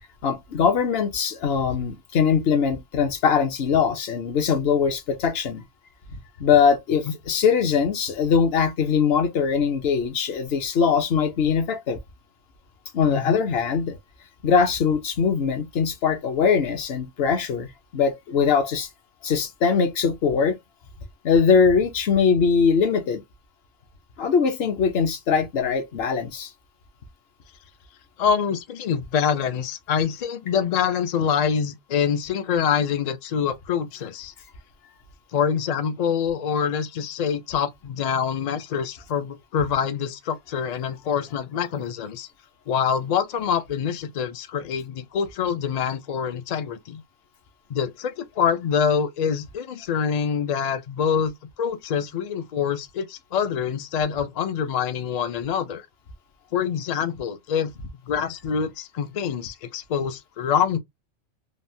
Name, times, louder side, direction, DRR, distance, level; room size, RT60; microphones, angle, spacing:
voice 1, 0.2-5.6 6.4-12.0 12.9-14.0 14.4-17.7 17.9-18.9 19.2-20.6 21.2-23.2 24.2-26.5, left 6 dB, 60° left, 0.8 m, -21 dB
voice 2, 13.1-13.4 28.2-34.3 35.3-42.3 42.7-47.0 47.7-55.9 56.5-57.7 58.1-60.8, left 7 dB, 75° left, 0.3 m, -25 dB
3.3 x 2.1 x 2.6 m
omnidirectional pair, 1.3 m